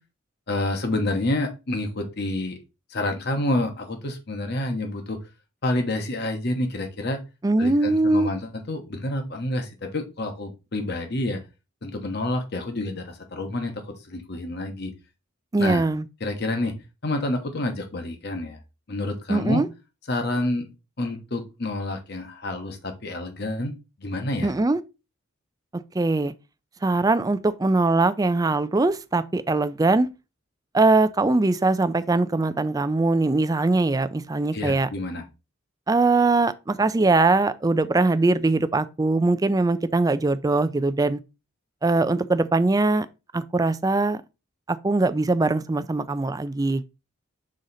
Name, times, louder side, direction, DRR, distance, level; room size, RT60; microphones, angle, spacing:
voice 1, 0.5-2.6 2.9-5.2 5.6-7.2 7.6-11.4 11.8-14.9 15.6-15.9 16.2-16.7 17.0-18.6 18.9-19.6 20.1-20.7 21.0-23.7 24.0-24.5 34.5-35.2, left 1 dB, 55° left, 1.1 m, -28 dB
voice 2, 7.4-8.3 15.5-16.1 19.3-19.7 24.4-24.8 25.7-26.3 26.8-30.1 30.7-34.9 35.9-41.2 41.8-43.1 43.3-44.2 44.7-46.8, right 2 dB, 15° right, 0.4 m, -21 dB
6.4 x 3.8 x 4.1 m
head